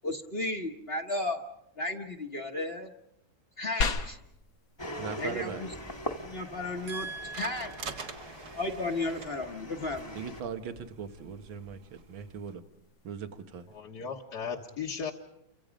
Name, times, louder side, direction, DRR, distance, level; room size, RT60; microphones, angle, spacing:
voice 1, 0.0-1.5 1.8-2.9 3.6-4.2 5.2-5.7 6.2-7.1 7.4-7.7 8.0-8.1 8.6-10.2, left 2 dB, 35° left, 4 dB, 1.3 m, -34 dB
sound 1, 3.8-13.8, left 4 dB, 90° left, 2.3 m, -41 dB
sound 2, 4.8-10.4, equal, 15° left, 1.1 m, -42 dB
voice 2, 5.0-5.6 6.9-8.1 10.1-12.6 13.0-13.7, right 6 dB, 80° right, 8 dB, 2.2 m, -40 dB
sound 3, 5.7-12.5, right 4 dB, 60° right, 2.1 m, -48 dB
voice 3, 13.7-15.1, left 6 dB, 60° left, 0 dB, 1.9 m, -36 dB
30.0 x 24.5 x 5.2 m, 0.81 s
omnidirectional pair, 2.1 m